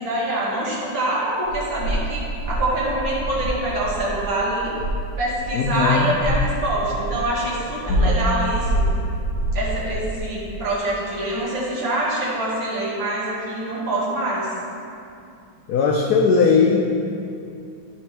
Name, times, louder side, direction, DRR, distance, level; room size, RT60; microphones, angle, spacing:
voice 1, 0.0-4.8 5.2-8.8 9.5-14.5, right 1 dB, 65° right, -7 dB, 2.4 m, -25 dB
sound 1, 1.5-7.6 7.8-10.3, right 1 dB, ahead, 0.8 m, -26 dB
voice 2, 5.5-6.1 7.9-8.2 15.7-16.9, left 5 dB, 80° left, 1 dB, 0.8 m, -19 dB
11.5 x 4.4 x 3.4 m, 2.6 s
omnidirectional pair, 2.2 m